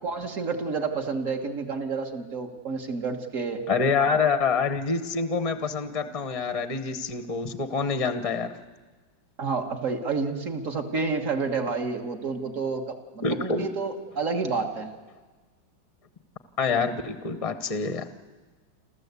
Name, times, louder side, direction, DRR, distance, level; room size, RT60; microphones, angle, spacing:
voice 1, 0.0-3.6 4.0-4.2 9.4-14.9, right 4 dB, 45° right, 5 dB, 1.8 m, -29 dB
voice 2, 3.7-8.5 13.2-13.7 16.6-18.1, left 5 dB, 30° left, 11 dB, 0.7 m, -26 dB
28.0 x 13.5 x 8.3 m, 1.4 s
omnidirectional pair, 2.1 m